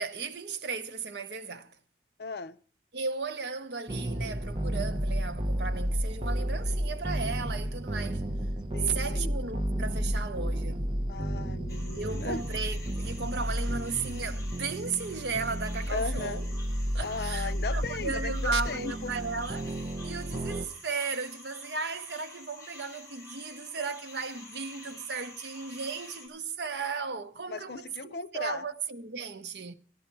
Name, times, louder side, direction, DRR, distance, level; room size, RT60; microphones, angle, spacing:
voice 1, 0.0-1.8 2.9-8.2 8.8-11.0 12.0-16.4 16.9-29.7, right 4 dB, 70° right, 0.8 m, -35 dB
voice 2, 2.2-2.6 8.7-9.4 11.1-12.4 15.9-16.4 16.9-19.1 27.5-28.6, left 4 dB, 60° left, 0.5 m, -37 dB
sound 1, 3.9-20.7, right 1 dB, 25° right, 0.7 m, -32 dB
sound 2, 11.7-26.3, left 2 dB, 20° left, 3.6 m, -49 dB
13.0 x 11.5 x 4.5 m
head